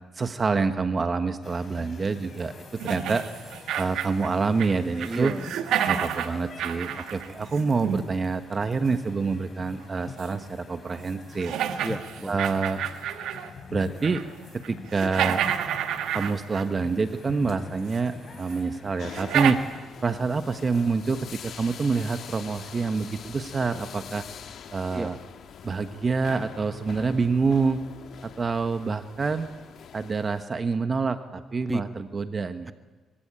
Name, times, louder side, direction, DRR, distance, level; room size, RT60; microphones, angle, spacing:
voice 1, 0.1-3.2 3.8-5.3 5.9-11.5 12.3-12.8 13.7-14.2 14.5-15.4 16.1-19.6 20.0-24.2 24.7-25.2 25.6-27.8 28.2-29.5 29.9-32.7, right 4 dB, 35° right, 9 dB, 1.3 m, -27 dB
sound 1, 1.4-19.5, left 5 dB, 50° left, 5.8 m, -45 dB
sound 2, 2.8-4.7 5.0-8.1 10.2-10.3 10.9-11.0 11.4-13.5 13.9-14.3 14.6-16.8 17.9-18.0 18.5-18.6 19.1-19.5, right 9 dB, 80° right, 1.8 m, -29 dB
voice 2, 5.0-5.5 11.8-12.4 24.9-25.1 31.7-31.8, right 2 dB, 15° right, 10 dB, 1.6 m, -30 dB
sound 3, 19.0-30.4, left 8 dB, 65° left, 2.0 m, -44 dB
24.0 x 23.5 x 8.9 m, 1.3 s
cardioid pair, 90°, 0 cm